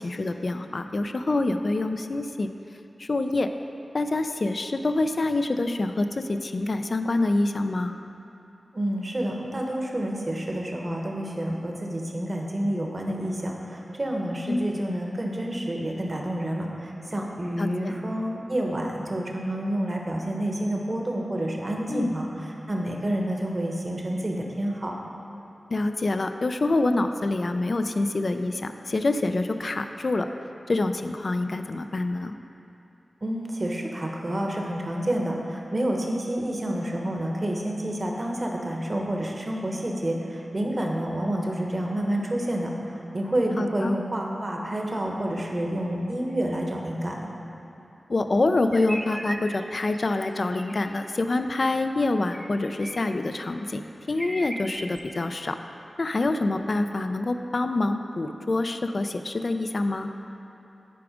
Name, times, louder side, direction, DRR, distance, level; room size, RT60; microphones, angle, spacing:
voice 1, 0.0-2.5 3.0-3.5 3.9-8.0 14.5-14.7 17.6-17.9 21.9-22.1 25.7-30.3 30.7-32.4 43.6-44.0 48.1-53.8 54.1-55.6 56.0-60.1, left 2 dB, 60° left, 8 dB, 0.4 m, -26 dB
voice 2, 8.7-22.3 22.7-25.0 33.2-47.3, right 1 dB, 40° right, 0 dB, 1.1 m, -29 dB
sound 1, 48.7-50.1 50.5-50.7 52.3-53.1 53.7-53.8 54.1-55.0, equal, 15° right, 0.8 m, -37 dB
9.4 x 4.8 x 5.0 m, 2.9 s
wide cardioid pair, 55°, 0 cm